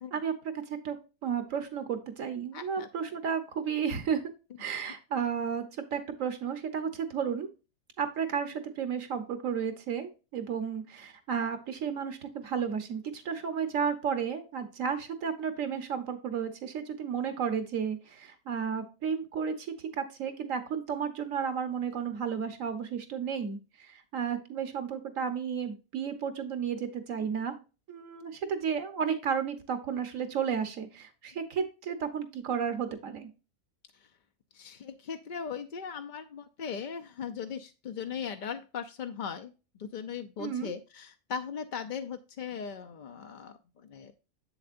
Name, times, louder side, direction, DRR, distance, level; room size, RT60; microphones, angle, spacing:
voice 1, 1.2-4.2 4.6-5.6 5.9-7.5 8.0-27.5 27.9-33.3 40.4-40.7, right 7 dB, 70° right, 9 dB, 1.5 m, -33 dB
voice 2, 2.5-2.9 33.9-34.1 34.5-44.1, left 7 dB, 60° left, 7 dB, 0.4 m, -39 dB
7.6 x 7.0 x 2.5 m, 0.31 s
omnidirectional pair, 1.4 m